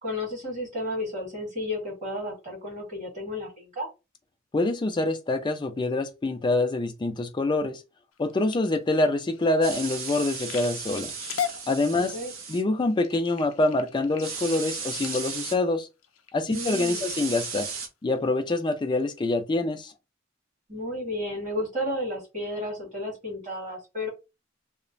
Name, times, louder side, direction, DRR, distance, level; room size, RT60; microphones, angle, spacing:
voice 1, 0.0-3.9 11.9-12.3 16.5-17.0 20.7-24.1, left 1 dB, 40° right, 1.7 m, -32 dB
voice 2, 4.5-7.8 8.2-11.1 11.7-12.1 12.5-15.9 16.3-17.7 18.0-19.9, left 2 dB, 25° left, 0.3 m, -25 dB
sound 1, 8.1-16.8 17.4-17.7 18.2-18.5 19.0-19.1 19.4-19.5, left 9 dB, 90° left, 0.4 m, -39 dB
sound 2, 9.6-12.6 14.2-15.6 16.5-17.9, right 5 dB, 90° right, 0.7 m, -35 dB
2.9 x 2.1 x 2.5 m
head